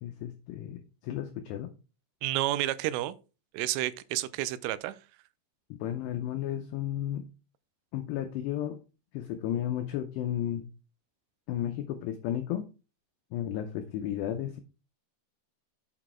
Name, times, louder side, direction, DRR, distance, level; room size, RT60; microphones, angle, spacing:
voice 1, 0.0-1.7 5.7-7.3 7.9-8.8 9.1-10.6 11.5-12.7 13.3-14.6, left 11 dB, 85° left, 2.4 m, -33 dB
voice 2, 2.2-3.2 3.5-5.0, right 15 dB, 90° right, 3.1 m, -30 dB
8.3 x 4.1 x 4.4 m
omnidirectional pair, 5.6 m